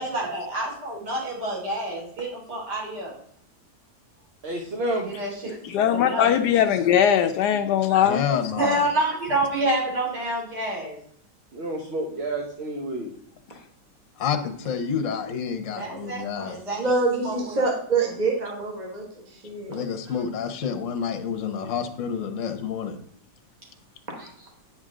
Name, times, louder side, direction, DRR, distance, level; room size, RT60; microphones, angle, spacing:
voice 1, 0.0-3.2 5.0-5.3 5.9-6.3 7.8-8.0 8.6-11.0 15.8-16.9 17.2-17.7 24.2-24.3, right 1 dB, 75° right, -4 dB, 4.0 m, -28 dB
voice 2, 4.4-5.1 11.5-13.1, right 1 dB, 40° right, 1 dB, 1.3 m, -29 dB
voice 3, 5.6-8.2, left 9 dB, 80° left, 6 dB, 1.2 m, -20 dB
voice 4, 8.0-8.9 14.2-16.6 19.7-23.0, left 7 dB, 55° left, 6 dB, 1.2 m, -29 dB
voice 5, 16.8-19.8, right 3 dB, 25° right, -1 dB, 1.8 m, -26 dB
9.2 x 6.4 x 3.7 m, 0.65 s
omnidirectional pair, 1.8 m